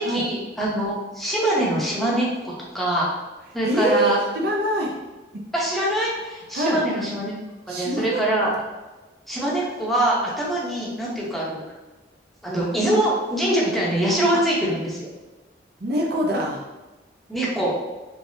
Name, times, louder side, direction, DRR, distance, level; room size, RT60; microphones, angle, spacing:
voice 1, 0.0-3.1 3.5-4.2 5.5-7.3 7.7-8.5 9.3-11.6 12.4-15.1 17.3-17.7, right 1 dB, ahead, -6 dB, 0.8 m, -24 dB
voice 2, 3.6-5.0 5.3-5.4 6.5-6.8 7.7-8.2 14.3-14.4 15.8-16.7, right 1 dB, 60° right, -1 dB, 0.6 m, -24 dB
3.3 x 3.2 x 2.7 m, 1.1 s
head